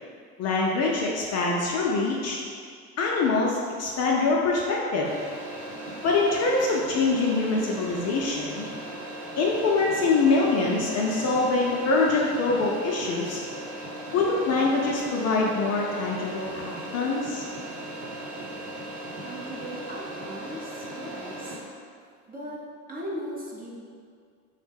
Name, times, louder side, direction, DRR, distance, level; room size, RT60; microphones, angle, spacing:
voice 1, 0.4-2.4 3.0-5.1 6.0-8.6 9.4-13.4 14.1-17.4, left 3 dB, 40° left, -2 dB, 0.5 m, -24 dB
sound 1, 5.0-21.6, right 1 dB, 65° right, 0.9 m, -38 dB
voice 2, 19.2-21.6 22.2-22.6 22.9-23.7, equal, 20° right, -4 dB, 0.6 m, -38 dB
3.5 x 2.1 x 3.4 m, 2.1 s
hypercardioid pair, 80°, 42 cm